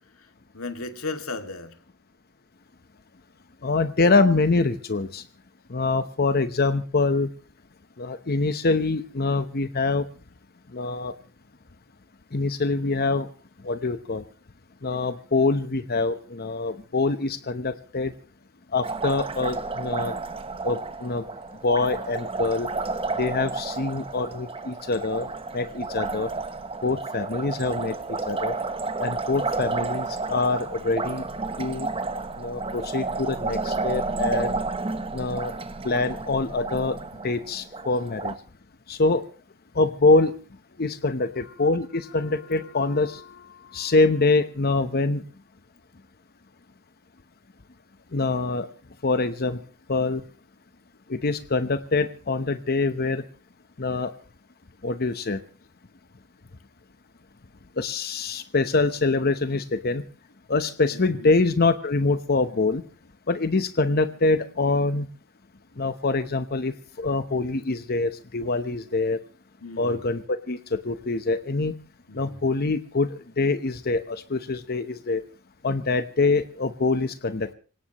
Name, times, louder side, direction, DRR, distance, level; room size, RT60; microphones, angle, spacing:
voice 1, 0.5-1.7 60.9-61.3 69.6-70.0 72.1-72.4, left 3 dB, 70° left, 7 dB, 2.3 m, -35 dB
voice 2, 3.6-5.2 5.7-7.3 8.0-10.1 10.7-11.1 12.3-13.3 13.6-14.2 14.8-18.1 18.7-20.2 20.6-21.3 21.6-22.7 23.2-25.3 25.5-26.3 26.8-27.9 28.3-28.5 29.0-31.2 31.6-31.9 32.4-34.6 35.1-35.5 35.8-37.0 37.2-38.3 38.9-39.2 39.7-40.3 40.8-45.2 48.1-48.7 49.0-49.6 49.9-50.2 51.1-53.2 53.8-54.1 54.8-55.4 57.8-60.0 60.5-62.8 63.3-65.1 65.8-69.2 69.8-71.7 72.1-75.2 75.6-77.5, left 3 dB, 45° left, 10 dB, 0.9 m, -24 dB
Liquid, 18.8-38.4, right 3 dB, 25° right, 1.0 m, -31 dB
26.5 x 17.5 x 3.0 m, 0.37 s
head